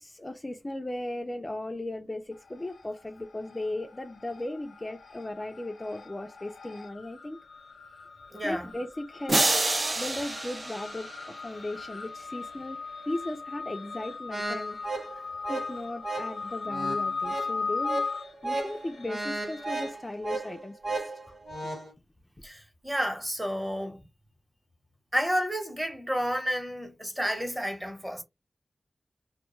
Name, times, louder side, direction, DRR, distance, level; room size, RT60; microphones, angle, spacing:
voice 1, 0.0-7.4 8.4-9.5 10.0-12.8 13.1-14.8 15.5-18.0 18.4-21.4, left 1 dB, 25° left, 0.3 m, -37 dB
sound 1, 2.4-3.0 3.3-19.9, left 4 dB, 90° left, 0.4 m, -38 dB
voice 2, 8.3-8.7 22.4-24.0 25.1-28.2, equal, 15° right, 0.9 m, -31 dB
sound 2, 9.3-11.6, right 2 dB, 45° right, 0.4 m, -28 dB
sound 3, 14.3-21.9, right 2 dB, 70° right, 1.1 m, -35 dB
2.2 x 2.2 x 3.0 m
wide cardioid pair, 80°, 0 cm